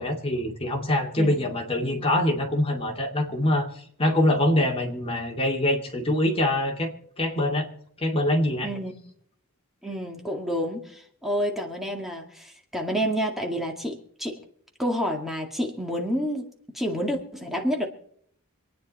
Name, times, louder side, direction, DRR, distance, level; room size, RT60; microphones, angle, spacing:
voice 1, 0.0-3.7 4.0-6.9 7.2-7.7 8.0-8.7, left 1 dB, 25° left, 1 dB, 2.6 m, -24 dB
voice 2, 8.6-8.9 9.8-14.4 14.8-16.5 16.7-17.9, equal, ahead, 1 dB, 2.0 m, -29 dB
26.0 x 9.7 x 4.3 m, 0.65 s
head